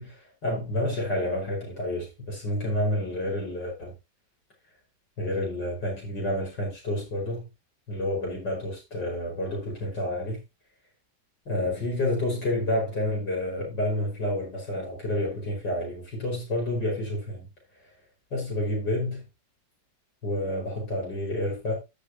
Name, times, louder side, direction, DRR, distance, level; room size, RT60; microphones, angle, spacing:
voice 1, 0.0-3.9 5.2-7.5 7.9-10.4 11.5-17.5 18.3-19.2 20.2-21.7, left 1 dB, 80° left, 6.1 m, -29 dB
14.0 x 6.8 x 2.9 m
omnidirectional pair, 1.9 m